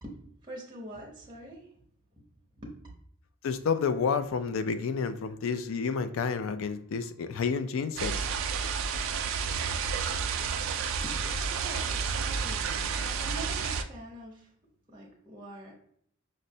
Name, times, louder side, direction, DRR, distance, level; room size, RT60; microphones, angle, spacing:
voice 1, 0.4-1.7 2.6-2.8 11.0-11.2 11.5-14.5 14.9-15.7, right 1 dB, 20° right, 0.7 m, -44 dB
voice 2, 3.4-8.1, left 5 dB, 70° left, 0.3 m, -30 dB
sound 1, 8.0-13.8, right 6 dB, 70° right, 0.3 m, -31 dB
5.3 x 2.0 x 2.6 m
head